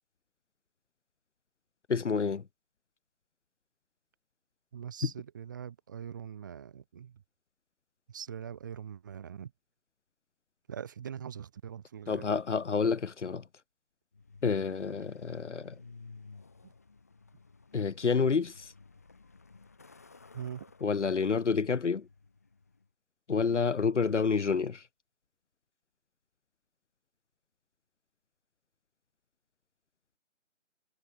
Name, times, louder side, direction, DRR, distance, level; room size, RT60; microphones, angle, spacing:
voice 1, 1.9-2.4 5.0-5.1 12.1-13.4 14.4-15.7 17.7-18.7 20.8-22.1 23.3-24.8, left 5 dB, 65° left, 1.0 m, -29 dB
voice 2, 4.7-7.2 8.1-9.5 10.7-12.3 16.6-16.7 20.3-20.6, right 8 dB, 15° right, 1.2 m, -42 dB
Truck, 14.1-22.9, left 4 dB, 15° left, 0.8 m, -55 dB
figure-of-eight pair, 155°, 38 cm